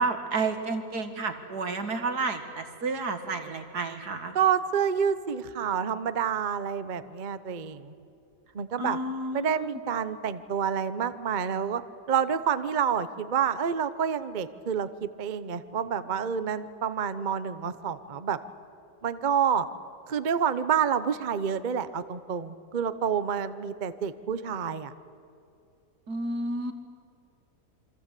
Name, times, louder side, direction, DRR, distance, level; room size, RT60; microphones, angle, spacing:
voice 1, 0.0-4.4 8.8-9.8 26.1-26.7, right 3 dB, 75° right, 7 dB, 2.5 m, -31 dB
voice 2, 4.3-7.9 8.5-9.0 9.3-11.8 12.1-18.4 19.0-19.7 20.1-24.9, right 7 dB, 40° right, 12 dB, 0.8 m, -28 dB
28.0 x 24.5 x 8.3 m, 2.6 s
omnidirectional pair, 1.7 m